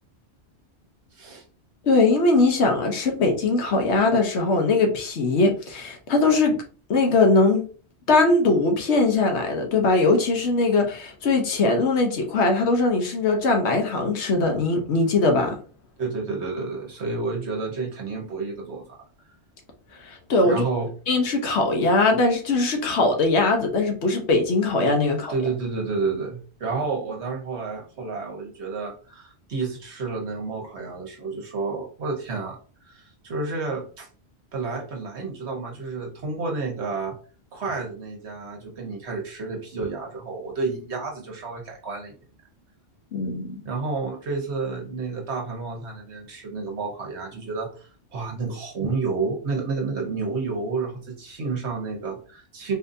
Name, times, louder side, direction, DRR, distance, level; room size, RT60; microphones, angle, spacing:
voice 1, 1.1-1.4 16.0-18.8 20.4-20.9 25.3-32.6 32.8-34.1 34.5-37.1 37.5-42.1 43.6-52.7, right 4 dB, 70° right, 0 dB, 1.3 m, -30 dB
voice 2, 1.8-6.6 6.9-7.6 8.1-15.6 20.0-20.6 21.1-25.3 43.1-43.6, left 3 dB, 75° left, 3 dB, 1.1 m, -21 dB
4.2 x 2.6 x 2.6 m, 0.38 s
omnidirectional pair, 1.2 m